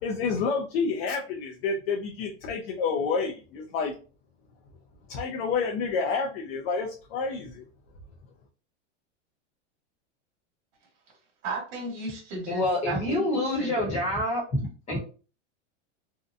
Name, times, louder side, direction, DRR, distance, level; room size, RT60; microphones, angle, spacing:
voice 1, 0.0-3.9 5.1-7.6, left 5 dB, 55° left, 0.5 m, -29 dB
voice 2, 11.4-13.9, right 3 dB, 40° right, 1.2 m, -35 dB
voice 3, 12.5-14.6 14.9-15.0, left 1 dB, 20° left, 0.9 m, -27 dB
2.7 x 2.1 x 2.5 m
supercardioid pair, 155°, 36 cm